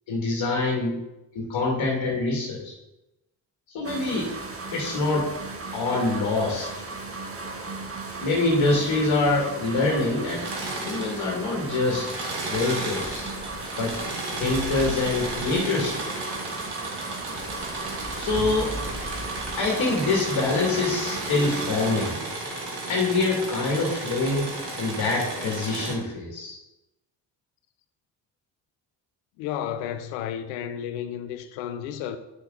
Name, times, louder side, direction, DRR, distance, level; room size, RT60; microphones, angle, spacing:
voice 1, 0.1-1.0 1.3-2.7 3.7-4.3 4.7-5.3 5.7-6.7 8.2-10.4 10.9-12.1 12.4-13.3 13.8-13.9 14.4-16.0 18.1-18.8 19.6-22.2 22.9-24.5 24.8-26.5, left 3 dB, 65° left, 2.3 m, -25 dB
sound 1, 3.8-22.1, right 3 dB, 25° right, 1.6 m, -36 dB
Engine / Mechanisms, 10.2-11.5 11.8-25.9, right 2 dB, 50° right, 2.6 m, -34 dB
sound 2, 12.9-16.1 17.1-20.7, left 1 dB, 25° left, 1.8 m, -40 dB
voice 2, 29.4-32.2, left 10 dB, 80° left, 0.8 m, -32 dB
9.3 x 6.1 x 3.9 m
hypercardioid pair, 50°, 49 cm